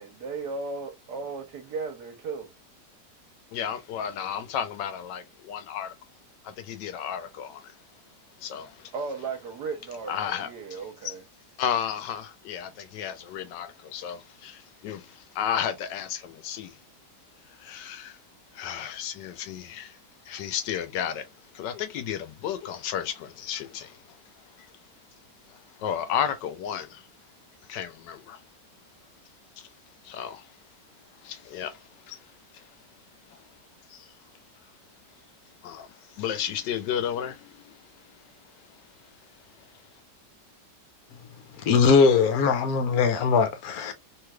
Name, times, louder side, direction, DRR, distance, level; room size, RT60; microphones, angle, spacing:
voice 1, 0.0-2.5 8.9-11.2, right 4 dB, 75° right, 1.4 m, -35 dB
voice 2, 3.5-5.9 6.4-7.8 8.4-8.9 10.1-11.1 11.6-16.8 17.5-18.2 18.5-20.0 20.2-21.3 21.5-24.2 24.6-24.7 25.5-27.1 27.7-28.4 29.6-29.7 30.0-30.5 31.2-32.2 32.5-32.7 33.3-33.4 33.9-34.1 35.6-38.3 38.7-38.8, left 9 dB, 85° left, 1.3 m, -33 dB
voice 3, 41.6-43.9, left 5 dB, 65° left, 1.1 m, -20 dB
3.2 x 3.2 x 2.2 m
omnidirectional pair, 1.8 m